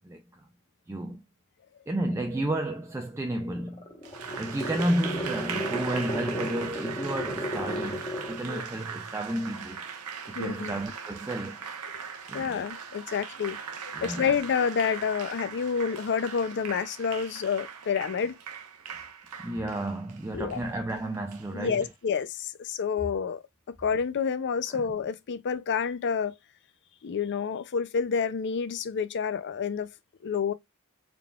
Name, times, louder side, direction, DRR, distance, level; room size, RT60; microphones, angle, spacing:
voice 1, 0.0-0.4 0.9-1.2 1.9-3.8 4.4-9.8 10.3-11.6 12.3-12.5 13.9-14.3 19.4-21.9 24.7-24.9, right 1 dB, 10° right, 0.3 m, -32 dB
sound 1, 3.5-8.5, equal, 25° left, 1.2 m, -34 dB
Applause, 4.0-21.9, right 6 dB, 80° right, 0.8 m, -40 dB
voice 2, 10.3-10.7 12.3-13.6 13.9-18.4 20.3-20.6 21.5-23.4 23.8-26.4 27.0-29.9 30.2-30.5, left 6 dB, 50° left, 0.4 m, -29 dB
3.8 x 3.5 x 2.3 m
head